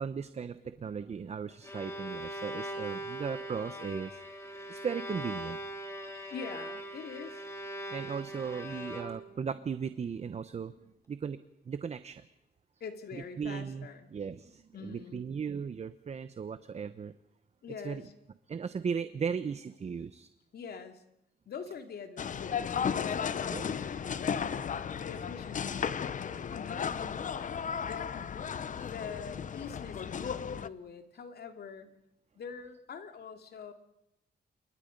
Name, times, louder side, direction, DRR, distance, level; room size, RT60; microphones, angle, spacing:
voice 1, 0.0-4.2 4.7-5.6 7.9-10.7 11.1-11.4 11.7-12.2 13.1-17.1 17.8-18.0 18.5-20.3 23.5-23.6 28.8-28.9, right 6 dB, 35° right, 13 dB, 0.9 m, -37 dB
Bowed string instrument, 1.5-9.4, right 1 dB, 15° left, 4.2 m, -41 dB
voice 2, 6.3-7.4 12.8-14.1 14.7-15.3 17.6-18.1 20.5-21.0 21.5-27.2 27.8-28.1 28.7-31.9 32.3-33.7, left 6 dB, 65° left, 7 dB, 2.8 m, -45 dB
sound 1, 22.2-30.7, left 7 dB, 45° left, 0.8 m, -34 dB
28.5 x 23.5 x 5.3 m, 0.83 s
wide cardioid pair, 140°, 18 cm